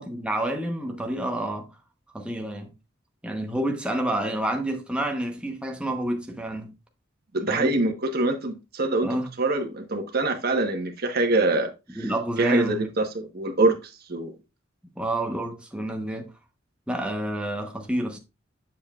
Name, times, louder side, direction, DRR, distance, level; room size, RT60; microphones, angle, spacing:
voice 1, 0.0-1.7 2.1-2.7 3.2-6.7 7.5-7.8 9.0-9.3 11.9-12.9 15.0-16.3 16.9-18.2, right 1 dB, 5° right, 1.0 m, -28 dB
voice 2, 7.3-9.1 9.4-13.7 14.1-14.3, right 2 dB, 55° right, 1.2 m, -25 dB
7.3 x 7.0 x 2.4 m
head